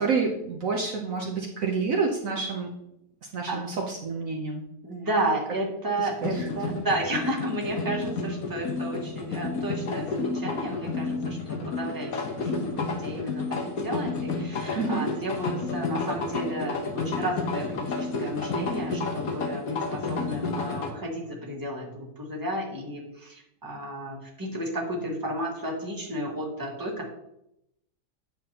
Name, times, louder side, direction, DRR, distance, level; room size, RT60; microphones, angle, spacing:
voice 1, 0.0-2.7 3.3-4.6 6.0-6.5 14.7-15.1, right 4 dB, 60° right, 0 dB, 1.2 m, -28 dB
voice 2, 4.8-27.1, right 1 dB, 15° right, -2 dB, 1.6 m, -32 dB
sound 1, 6.2-20.9, left 3 dB, 65° left, 1.5 m, -31 dB
9.3 x 6.9 x 2.9 m, 0.82 s
omnidirectional pair, 1.7 m